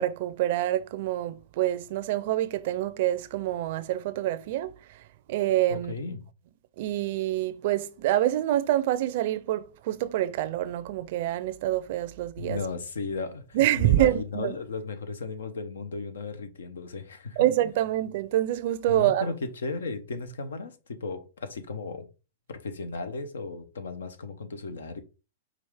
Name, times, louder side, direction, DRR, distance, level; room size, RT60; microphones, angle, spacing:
voice 1, 0.0-4.7 5.3-5.9 6.8-12.6 13.5-14.5 17.4-19.3, right 13 dB, 60° right, 0.4 m, -26 dB
voice 2, 5.7-6.3 12.4-17.5 18.9-22.1 22.5-25.0, left 4 dB, 90° left, 0.7 m, -35 dB
4.7 x 2.4 x 3.5 m
hypercardioid pair, 125°, 0 cm